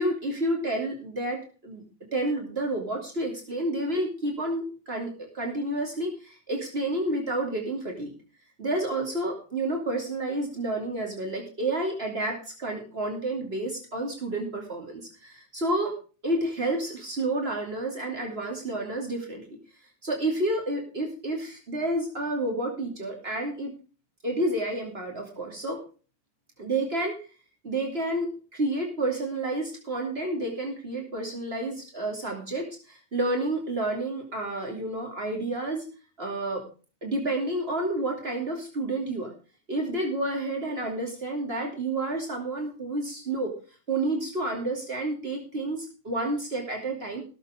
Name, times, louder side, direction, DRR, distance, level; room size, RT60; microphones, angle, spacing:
voice 1, 0.0-1.8 2.1-8.1 8.6-15.9 16.2-19.6 20.0-23.7 24.2-25.8 26.6-27.2 27.6-35.8 36.2-36.6 37.0-39.3 39.7-43.5 43.9-47.2, right 1 dB, 60° right, 1 dB, 3.0 m, -30 dB
17.0 x 7.4 x 5.0 m, 0.36 s
omnidirectional pair, 1.2 m